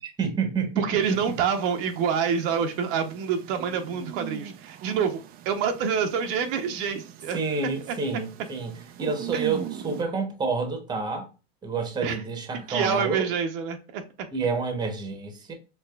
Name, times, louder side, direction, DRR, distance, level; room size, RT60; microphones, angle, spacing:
voice 1, 0.0-0.9 7.3-8.7 9.0-11.3 11.6-13.3 14.3-15.5, right 4 dB, 15° right, 0.9 m, -28 dB
voice 2, 0.8-7.4 7.9-8.0 9.3-9.5 12.0-12.2 12.5-14.0, right 7 dB, 60° right, 0.8 m, -27 dB
sound 1, 1.0-10.0, right 10 dB, 30° right, 0.4 m, -41 dB
4.6 x 2.9 x 2.3 m
supercardioid pair, 125°, 31 cm